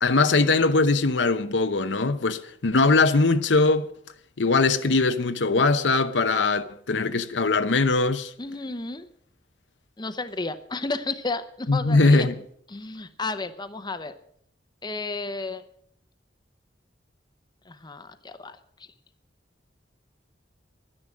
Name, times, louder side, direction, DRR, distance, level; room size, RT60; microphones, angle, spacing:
voice 1, 0.0-3.9 4.4-8.3 11.7-12.3, left 3 dB, 85° left, 0.8 m, -21 dB
voice 2, 8.4-9.1 10.0-12.3 12.7-14.1 14.8-15.6 17.7-18.6, left 3 dB, 25° left, 0.8 m, -32 dB
12.0 x 10.0 x 7.3 m
head